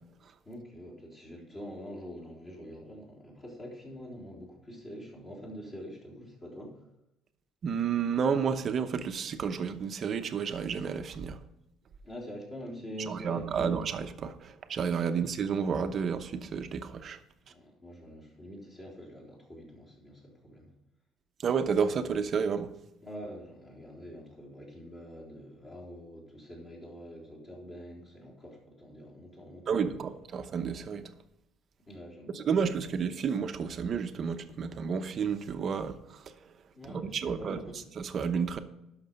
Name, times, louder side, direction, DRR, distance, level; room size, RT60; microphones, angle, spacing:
voice 1, 0.5-6.8 12.0-13.8 15.0-15.3 17.5-20.7 23.0-30.1 31.9-32.7 36.7-37.8, equal, 25° left, 3.7 m, -45 dB
voice 2, 7.6-11.4 13.1-17.2 21.4-22.7 29.7-31.1 32.3-36.0 36.9-37.6 38.0-38.6, right 6 dB, 35° right, 0.8 m, -31 dB
12.0 x 6.1 x 5.4 m
cardioid pair, 145°, 0 cm